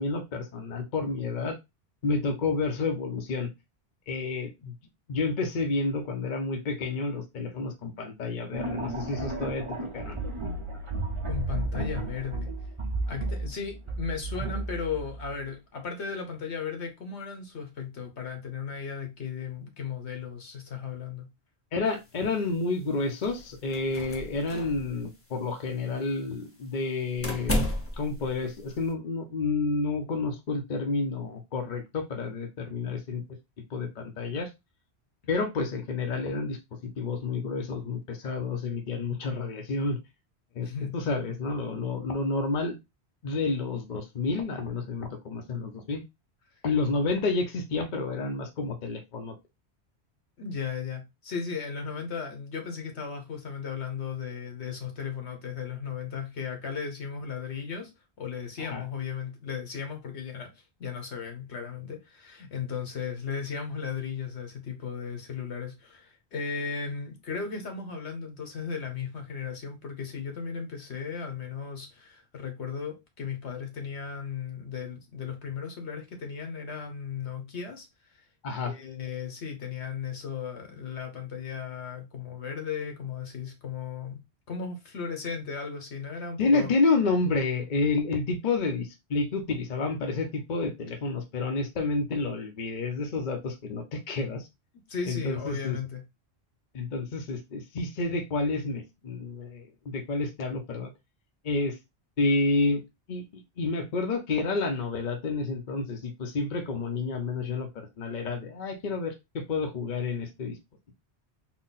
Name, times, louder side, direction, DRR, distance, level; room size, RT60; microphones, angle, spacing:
voice 1, 0.0-1.6 2.0-3.5 4.1-4.7 5.1-9.7 9.9-10.2 21.7-27.7 28.0-33.2 33.7-34.5 35.3-36.6 36.8-40.0 40.6-42.8 43.2-46.0 46.6-49.3 58.6-58.8 78.4-78.7 86.4-94.5 95.1-95.8 96.7-100.9 101.4-101.8 102.2-102.8 103.1-110.6, left 3 dB, 50° left, 0.8 m, -30 dB
sound 1, 8.5-15.4, right 2 dB, 30° right, 0.9 m, -33 dB
voice 2, 11.3-12.6 13.1-21.3 40.6-40.9 50.4-57.9 58.2-60.5 60.8-77.9 78.1-78.2 78.6-84.2 84.5-86.7 94.9-96.0, left 6 dB, 75° left, 1.3 m, -36 dB
sound 2, 21.9-28.9, left 1 dB, 15° left, 0.6 m, -35 dB
4.0 x 2.2 x 3.9 m
omnidirectional pair, 1.1 m